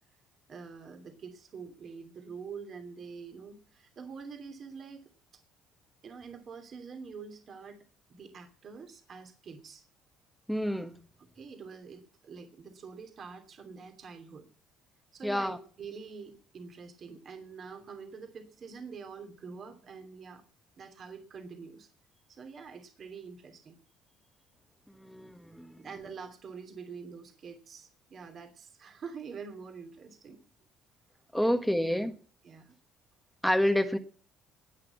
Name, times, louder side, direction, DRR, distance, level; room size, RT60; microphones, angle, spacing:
voice 1, 0.5-5.0 6.0-7.8 8.1-9.8 11.2-14.5 15.1-20.4 20.8-21.9 22.3-23.8 25.8-30.4 31.4-31.6 32.4-32.7, right 5 dB, 45° right, 5 dB, 2.9 m, -46 dB
voice 2, 10.5-11.0 15.2-15.6 25.0-25.8 31.3-32.1 33.4-34.0, equal, ahead, 7 dB, 1.5 m, -28 dB
19.0 x 6.8 x 8.3 m, 0.41 s
supercardioid pair, 95°, 0 cm